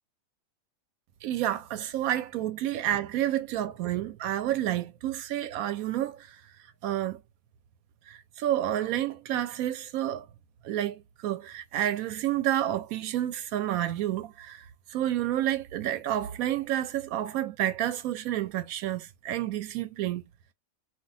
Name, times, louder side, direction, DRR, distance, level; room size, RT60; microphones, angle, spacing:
voice 1, 1.2-6.4 6.8-7.2 8.1-10.3 10.6-20.2, right 12 dB, 90° right, 1.0 m, -30 dB
2.5 x 2.2 x 3.9 m
omnidirectional pair, 1.5 m